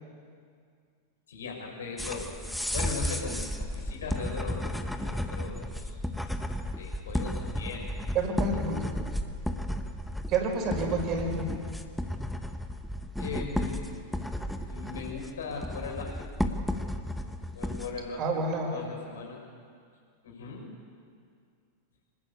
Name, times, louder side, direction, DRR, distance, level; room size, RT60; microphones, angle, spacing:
voice 1, 1.3-2.3 2.7-6.0 6.8-7.9 13.2-14.0 14.6-16.3 17.5-18.2 18.7-19.4 20.2-20.7, left 4 dB, 70° left, 1 dB, 6.3 m, -39 dB
sound 1, 2.0-18.0, left 1 dB, ahead, 1.6 m, -33 dB
voice 2, 8.1-8.9 10.3-11.5 18.2-18.8, right 3 dB, 40° right, 3 dB, 5.4 m, -29 dB
26.0 x 19.5 x 8.4 m, 2.2 s
figure-of-eight pair, 95°, 0 cm